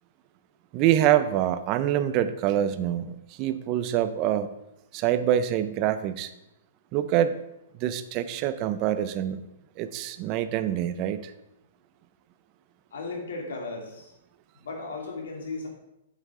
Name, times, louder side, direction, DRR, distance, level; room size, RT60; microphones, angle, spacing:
voice 1, 0.7-4.5 4.9-6.3 6.9-7.4 7.7-9.4 9.8-11.3, right 11 dB, 25° right, 12 dB, 0.4 m, -25 dB
voice 2, 12.9-14.1 14.6-15.7, left 3 dB, 85° left, 1 dB, 2.6 m, -35 dB
8.1 x 7.8 x 3.6 m, 0.88 s
hypercardioid pair, 175°, 0 cm